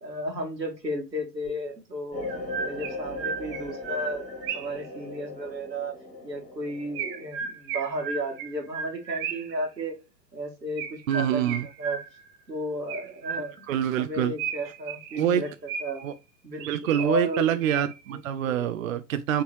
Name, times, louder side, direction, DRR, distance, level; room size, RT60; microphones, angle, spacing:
voice 1, 0.0-2.2 2.6-4.2 4.5-5.9 6.2-10.0 10.3-12.0 12.5-13.6 14.0-15.5 15.8-16.0 16.4-17.6 18.1-18.6, equal, 90° right, 1.7 m, -33 dB
Chirp tweet, 1.4-1.5 2.2-4.9 6.9-9.6 10.8-12.4 12.9-13.8 14.4-16.1 16.6-18.1, right 6 dB, 35° right, 1.0 m, -35 dB
sound 1, 2.1-7.3, left 2 dB, 15° left, 2.0 m, -38 dB
voice 2, 11.1-11.7 13.7-14.3 15.2-15.4 16.0-16.1 16.6-19.4, right 10 dB, 55° right, 0.5 m, -26 dB
4.5 x 3.8 x 3.0 m
figure-of-eight pair, 110°, 49 cm